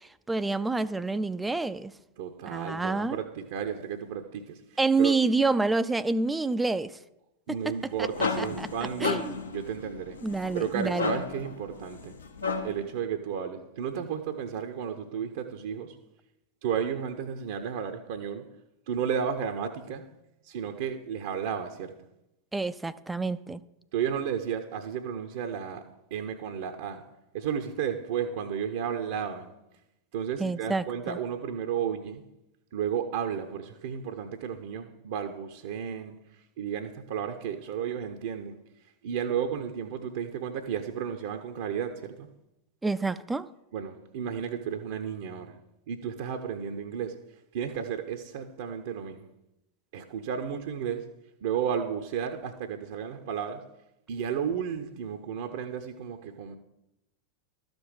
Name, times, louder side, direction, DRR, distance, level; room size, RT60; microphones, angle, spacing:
voice 1, 0.0-1.9 2.5-3.2 4.8-7.0 7.5-7.7 8.4-8.7 9.0-9.4 10.2-11.1 22.5-23.6 30.4-31.2 42.8-43.5, right 3 dB, 10° right, 0.4 m, -28 dB
voice 2, 2.2-5.2 7.5-10.2 10.5-12.3 12.6-16.0 16.6-18.5 18.9-20.1 20.4-22.1 23.9-27.1 27.3-29.6 30.1-32.3 32.7-36.3 36.6-38.6 39.0-42.3 43.7-49.3 49.9-53.7 54.1-56.6, right 8 dB, 55° right, 0.7 m, -33 dB
sound 1, 7.7-12.9, left 4 dB, 70° left, 1.0 m, -34 dB
13.0 x 5.3 x 6.3 m
figure-of-eight pair, 90°, 0 cm